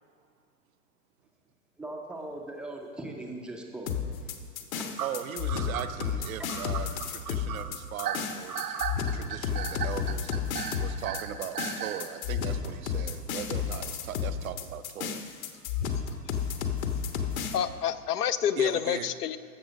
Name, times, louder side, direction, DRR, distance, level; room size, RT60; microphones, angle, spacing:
voice 1, 1.8-4.4 4.7-4.9 6.4-6.5, right 2 dB, ahead, 0 dB, 0.4 m, -40 dB
sound 1, 3.9-17.6, left 7 dB, 60° left, 1.2 m, -32 dB
voice 2, 5.0-8.8 9.1-10.3 10.8-15.2 18.6-19.1, right 10 dB, 60° right, 10 dB, 0.7 m, -39 dB
sound 2, 5.0-12.1, right 9 dB, 85° right, 1.0 m, -35 dB
voice 3, 17.5-19.4, left 9 dB, 80° left, 13 dB, 0.7 m, -28 dB
14.5 x 6.1 x 5.1 m, 2.3 s
hypercardioid pair, 115°, 46 cm